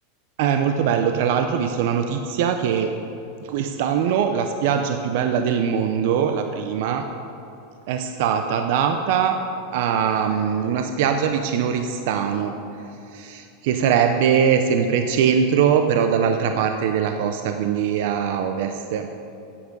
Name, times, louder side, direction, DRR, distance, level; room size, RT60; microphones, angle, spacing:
voice 1, 0.4-2.9 3.4-7.0 7.9-9.4 9.7-12.5 13.1-19.1, right 7 dB, 60° right, 6 dB, 0.6 m, -22 dB
9.8 x 8.6 x 5.3 m, 2.7 s
supercardioid pair, 150°, 0 cm